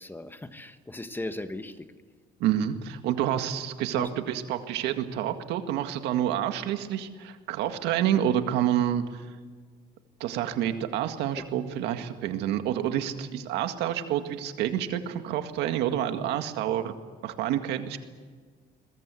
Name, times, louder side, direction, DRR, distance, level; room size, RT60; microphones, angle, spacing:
voice 1, 0.0-1.9 4.0-4.1 11.4-11.5, left 2 dB, 10° left, 1.4 m, -37 dB
voice 2, 2.4-9.0 10.2-16.9 17.2-18.0, right 11 dB, 90° right, 1.9 m, -28 dB
22.5 x 21.5 x 8.4 m
cardioid pair, 110°, 17 cm